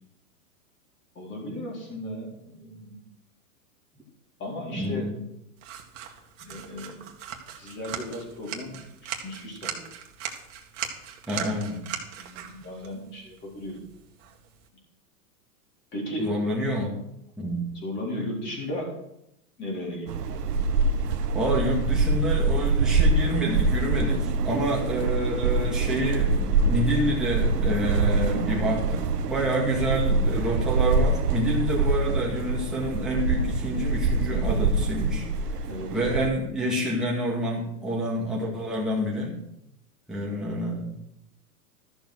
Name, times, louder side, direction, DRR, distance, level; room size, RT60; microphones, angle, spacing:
voice 1, 1.2-3.0 4.4-5.1 6.4-7.0 7.6-8.7 9.2-9.9 12.2-13.8 15.9-16.3 17.7-18.9 19.6-20.1 35.7-35.9, left 1 dB, 25° left, -2 dB, 4.2 m, -35 dB
voice 2, 4.7-5.2 11.3-11.8 16.2-17.0 17.4-17.7 21.3-35.3 35.9-39.4 40.1-40.9, equal, ahead, -5 dB, 2.1 m, -28 dB
sound 1, 5.6-14.7, right 9 dB, 50° right, 2.1 m, -39 dB
sound 2, 20.1-36.3, right 3 dB, 85° right, 1.2 m, -25 dB
13.5 x 7.0 x 6.3 m, 0.80 s
hypercardioid pair, 145°, 47 cm